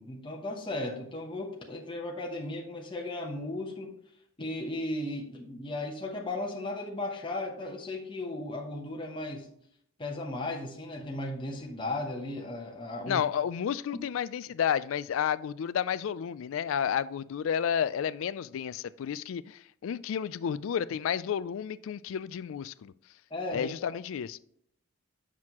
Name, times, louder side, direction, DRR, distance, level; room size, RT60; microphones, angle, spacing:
voice 1, 0.0-3.9 4.4-9.5 10.0-13.2 23.3-23.9, left 2 dB, 25° left, 0 dB, 0.9 m, -36 dB
voice 2, 13.1-22.9 23.5-24.4, left 8 dB, 70° left, 17 dB, 0.3 m, -31 dB
7.5 x 6.1 x 2.9 m, 0.69 s
head